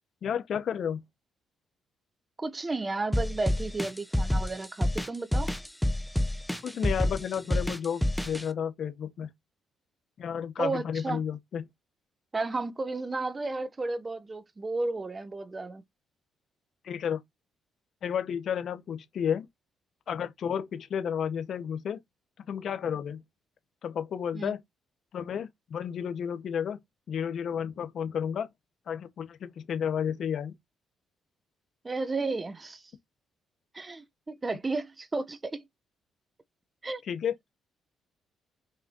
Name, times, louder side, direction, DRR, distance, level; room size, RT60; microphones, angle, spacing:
voice 1, 0.2-1.0 6.6-9.3 10.2-11.7 16.8-17.2 18.0-19.5 20.1-22.0 22.5-23.2 23.8-24.6 25.1-26.8 27.1-28.5 28.9-30.5 37.1-37.3, left 8 dB, 60° left, 1.6 m, -32 dB
voice 2, 2.4-5.5 10.6-11.2 12.3-15.8 24.3-24.6 31.8-32.8 33.7-35.6 36.8-37.0, right 3 dB, 25° right, 1.0 m, -33 dB
sound 1, 3.1-8.4, left 1 dB, 5° left, 1.0 m, -28 dB
6.7 x 4.8 x 3.0 m
cardioid pair, 90°, 0 cm